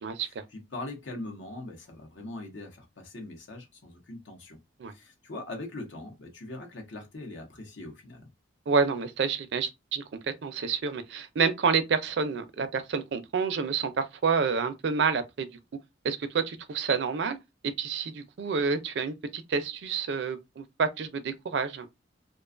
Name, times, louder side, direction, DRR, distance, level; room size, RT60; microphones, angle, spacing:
voice 1, 0.2-4.6 4.9-8.3, left 2 dB, 75° left, 0.8 m, -41 dB
voice 2, 8.7-10.0 10.4-15.5 16.0-17.4 17.6-21.9, right 5 dB, 65° right, 0.4 m, -28 dB
2.4 x 2.2 x 2.4 m
head